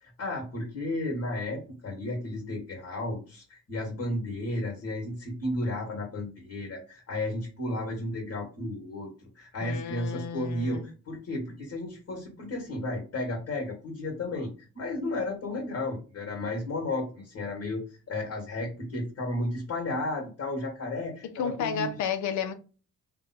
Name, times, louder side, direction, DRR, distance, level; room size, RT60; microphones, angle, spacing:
voice 1, 0.0-9.1 9.3-14.5 14.7-21.9, left 2 dB, 55° left, 1.8 m, -33 dB
voice 2, 9.6-10.9 21.4-22.5, left 6 dB, 75° left, 0.7 m, -32 dB
3.4 x 2.3 x 4.2 m
cardioid pair, 90°, 30 cm